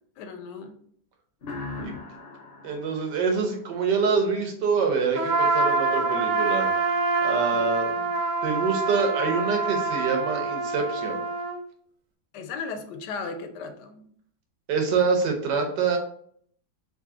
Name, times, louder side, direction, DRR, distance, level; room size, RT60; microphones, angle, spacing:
voice 1, 0.2-0.8 7.5-8.1 12.3-14.1, left 4 dB, 80° left, 7 dB, 1.2 m, -37 dB
sound 1, 1.4-4.1, left 3 dB, 65° left, 0.6 m, -39 dB
voice 2, 2.6-6.9 7.2-7.9 8.4-11.2 14.7-16.0, right 5 dB, 90° right, 3 dB, 1.5 m, -26 dB
Trumpet, 5.1-11.6, right 3 dB, 65° right, 0.8 m, -26 dB
3.8 x 2.8 x 3.6 m, 0.63 s
omnidirectional pair, 1.8 m